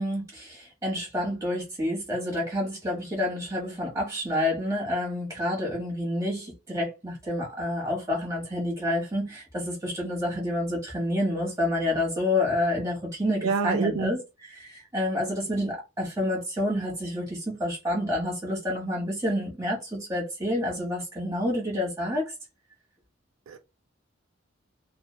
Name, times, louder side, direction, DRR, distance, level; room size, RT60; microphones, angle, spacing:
voice 1, 0.0-22.3, left 1 dB, 15° right, 1.1 m, -29 dB
voice 2, 13.4-14.2 23.5-23.6, right 5 dB, 80° right, 0.4 m, -27 dB
3.1 x 2.1 x 2.2 m
head